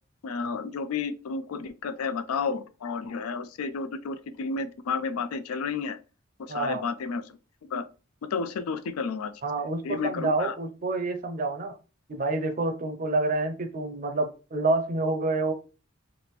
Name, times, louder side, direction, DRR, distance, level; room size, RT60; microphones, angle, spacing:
voice 1, 0.2-6.0 6.4-7.2 7.7-7.8 8.3-9.3 9.8-10.5, left 5 dB, 80° left, 0.4 m, -31 dB
voice 2, 6.5-6.8 9.4-11.7 12.1-15.5, right 2 dB, 35° right, 0.5 m, -28 dB
3.4 x 2.4 x 3.0 m
head